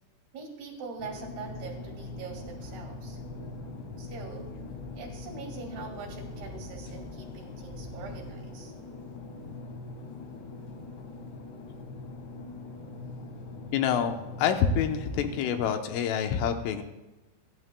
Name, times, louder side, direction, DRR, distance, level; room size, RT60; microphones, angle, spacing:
voice 1, 0.3-3.2 4.0-4.5 4.9-8.7, right 5 dB, 55° right, 1 dB, 4.4 m, -43 dB
sound 1, 1.0-15.7, left 2 dB, 65° left, 3.8 m, -42 dB
voice 2, 13.7-16.8, left 8 dB, 80° left, 6 dB, 3.4 m, -27 dB
24.5 x 12.5 x 2.3 m, 1.1 s
omnidirectional pair, 5.8 m